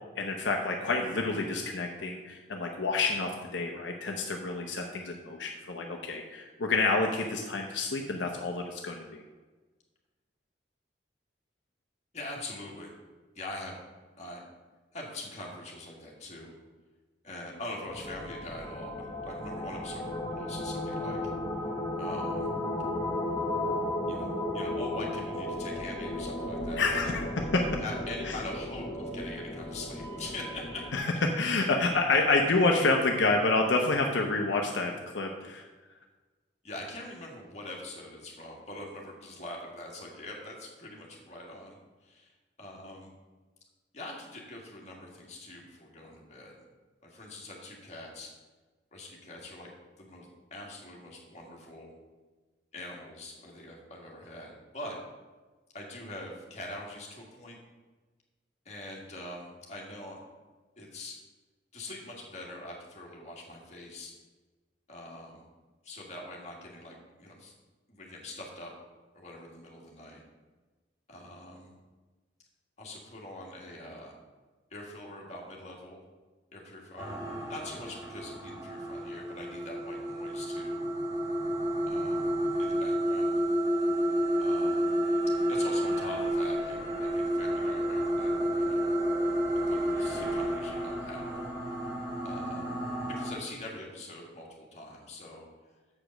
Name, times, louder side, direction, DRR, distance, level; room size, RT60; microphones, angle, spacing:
voice 1, 0.2-9.2 26.8-27.8 30.9-35.6, left 3 dB, 75° left, 1 dB, 0.8 m, -28 dB
voice 2, 12.1-12.9 13.3-13.8 14.2-14.4 14.9-16.5 17.2-21.3 22.0-22.5 24.1-27.1 27.8-30.9 36.6-41.8 42.0-42.3 42.6-43.1 43.9-46.6 47.0-48.3 48.9-49.7 50.0-51.9 52.7-55.0 55.7-57.6 58.7-60.2 60.8-61.2 61.7-64.1 64.9-65.4 65.8-67.5 67.9-68.7 69.1-70.2 71.1-71.8 72.8-74.2 74.7-76.0 76.5-80.8 81.9-82.3 82.6-83.4 84.4-84.9 85.5-88.9 89.5-91.4 92.2-92.8 93.1-95.5, left 1 dB, 40° left, -2 dB, 1.8 m, -43 dB
sound 1, 17.9-31.0, left 1 dB, 20° left, 0.9 m, -34 dB
sound 2, 77.0-93.3, equal, 20° right, 1.6 m, -30 dB
7.4 x 5.0 x 6.5 m, 1.3 s
head